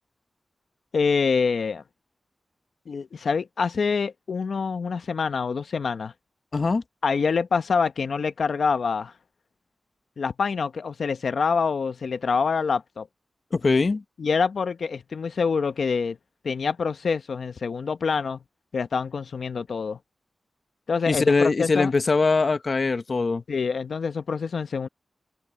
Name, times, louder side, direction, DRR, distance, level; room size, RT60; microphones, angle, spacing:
voice 1, 0.9-1.8 2.9-6.1 7.0-9.1 10.2-13.1 14.2-16.2 16.4-18.4 18.7-20.0 20.9-21.9 23.5-24.9, left 5 dB, 80° left, 0.8 m, -26 dB
voice 2, 6.5-6.8 13.5-14.0 21.1-23.4, left 4 dB, 50° left, 0.9 m, -22 dB
wide cardioid pair, 130°, 0 cm